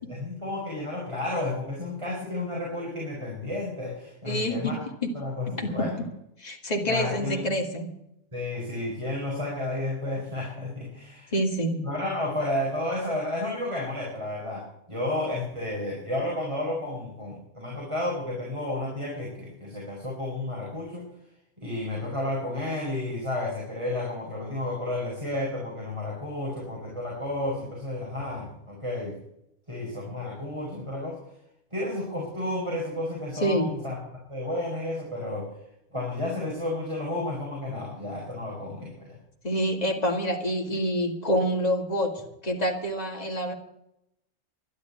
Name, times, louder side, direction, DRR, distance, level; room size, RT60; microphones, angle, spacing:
voice 1, 0.1-4.8 5.1-6.0 6.9-7.5 8.3-11.3 11.8-21.1 21.6-29.1 29.7-31.2 31.7-34.0 34.3-35.5 35.9-39.2, left 1 dB, 20° right, -3 dB, 4.6 m, -32 dB
voice 2, 4.3-4.7 5.6-5.7 6.4-7.9 11.3-11.9 33.4-33.7 39.4-42.1 42.4-43.5, equal, 30° left, 1 dB, 2.4 m, -27 dB
11.5 x 11.5 x 8.4 m, 0.82 s
omnidirectional pair, 1.4 m